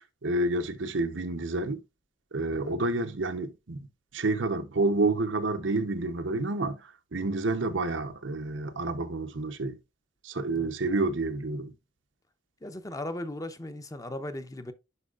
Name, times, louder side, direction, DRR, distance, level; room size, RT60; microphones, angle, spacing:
voice 1, 0.2-1.8 2.3-3.9 4.1-9.8 10.2-11.7, right 2 dB, 90° right, 0.9 m, -29 dB
voice 2, 7.5-7.8 10.5-10.7 12.6-14.7, left 1 dB, 20° left, 0.7 m, -38 dB
11.0 x 4.7 x 2.4 m
head